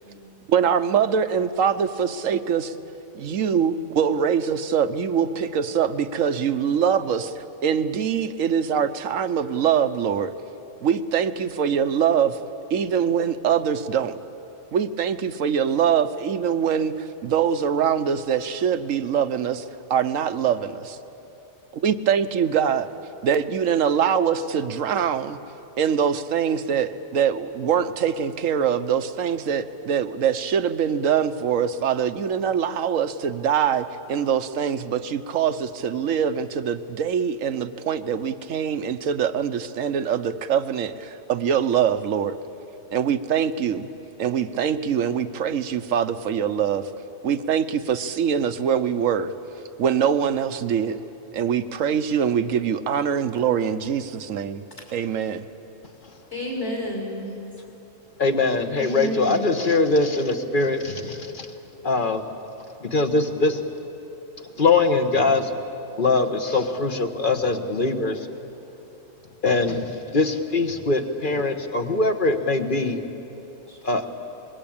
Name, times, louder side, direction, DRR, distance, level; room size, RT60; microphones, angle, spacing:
voice 1, 0.5-2.7 3.1-7.3 7.6-10.3 10.8-12.4 12.7-14.2 14.7-19.6 19.9-21.0 21.7-22.9 23.2-25.4 25.8-42.4 42.9-43.9 44.2-46.9 47.2-49.3 49.8-51.0 51.3-54.6 54.9-55.5, right 8 dB, 75° right, 12 dB, 1.2 m, -23 dB
voice 2, 56.3-57.3 58.8-59.5 73.7-73.8, left 1 dB, 55° left, -2 dB, 5.5 m, -30 dB
voice 3, 58.2-61.5 61.8-62.2 62.8-63.6 64.6-65.5 66.0-68.2 69.4-73.0 73.8-74.1, left 3 dB, 40° left, 8 dB, 1.4 m, -22 dB
25.5 x 21.0 x 8.8 m, 3.0 s
omnidirectional pair, 1.4 m